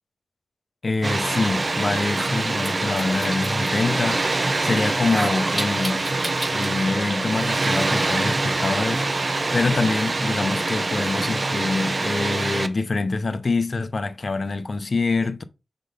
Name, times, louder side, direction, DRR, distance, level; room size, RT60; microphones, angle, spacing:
voice 1, 0.8-6.1 6.5-15.4, left 3 dB, 45° left, 0.7 m, -25 dB
Water, 1.0-12.7, right 2 dB, 35° right, 0.7 m, -24 dB
sound 1, 2.1-3.7 4.9-6.7, right 1 dB, 15° right, 4.5 m, -32 dB
6.5 x 3.9 x 5.0 m
wide cardioid pair, 95°, 0 cm